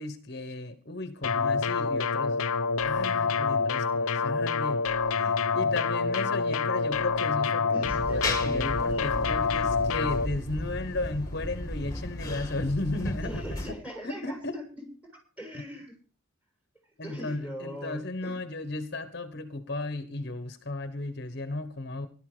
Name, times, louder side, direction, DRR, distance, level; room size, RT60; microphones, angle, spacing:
voice 1, 0.0-2.4 2.8-13.8 14.0-14.6 15.5-15.6 17.0-22.1, left 2 dB, 50° left, 1.3 m, -35 dB
sound 1, 1.2-10.3, left 5 dB, 80° left, 0.8 m, -27 dB
voice 2, 7.7-9.2 13.2-16.0 17.0-18.4, equal, 5° right, 6.8 m, -41 dB
sound 2, 7.8-13.7, left 1 dB, 15° left, 2.3 m, -35 dB
17.0 x 12.5 x 5.1 m
head